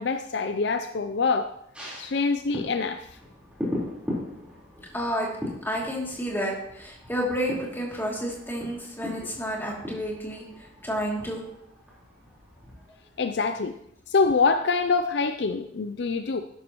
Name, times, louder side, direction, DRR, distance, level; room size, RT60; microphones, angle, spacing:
voice 1, 0.0-1.5 2.0-3.1 13.2-13.7 14.1-16.4, left 4 dB, 60° left, 9 dB, 0.5 m, -25 dB
sound 1, 1.7-13.4 13.8-13.9, left 1 dB, 5° right, 4.1 m, -39 dB
voice 2, 4.9-5.3 5.6-10.4 10.8-11.4, equal, 10° left, -3 dB, 2.7 m, -30 dB
13.0 x 11.5 x 3.0 m, 0.75 s
head